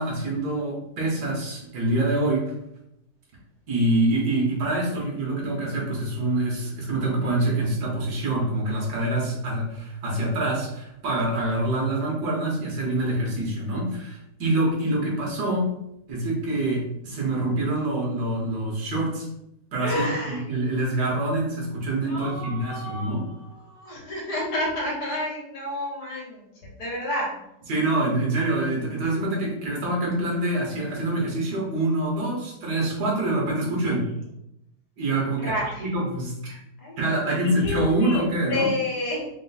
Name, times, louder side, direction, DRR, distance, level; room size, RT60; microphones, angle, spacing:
voice 1, 0.0-2.5 3.7-15.7 16.1-19.3 19.7-23.3 27.7-34.1 35.0-35.5 35.8-36.6 37.0-38.7, right 1 dB, 90° right, -2 dB, 1.8 m, -25 dB
voice 2, 19.8-20.4 21.9-27.3 35.4-35.9 36.8-39.3, left 1 dB, 80° left, -3 dB, 1.9 m, -30 dB
4.5 x 2.3 x 4.0 m, 0.83 s
omnidirectional pair, 1.7 m